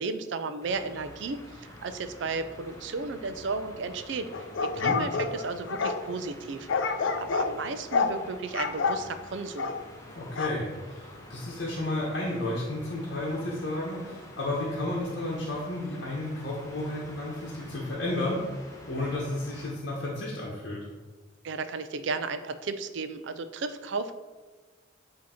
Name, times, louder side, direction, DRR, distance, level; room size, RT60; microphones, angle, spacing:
voice 1, 0.0-4.3 4.6-6.7 7.2-9.7 21.4-24.1, right 4 dB, 65° right, 10 dB, 0.4 m, -34 dB
sound 1, 0.6-19.7, left 1 dB, 15° left, 0.8 m, -48 dB
sound 2, 4.3-6.0 6.7-7.5 7.9-8.2 8.5-9.0 9.6-9.8 10.4-10.6, left 5 dB, 75° left, 0.5 m, -28 dB
voice 2, 10.1-18.4 18.9-20.8, left 1 dB, 55° left, -5 dB, 1.0 m, -32 dB
8.4 x 2.8 x 4.3 m, 1.3 s
head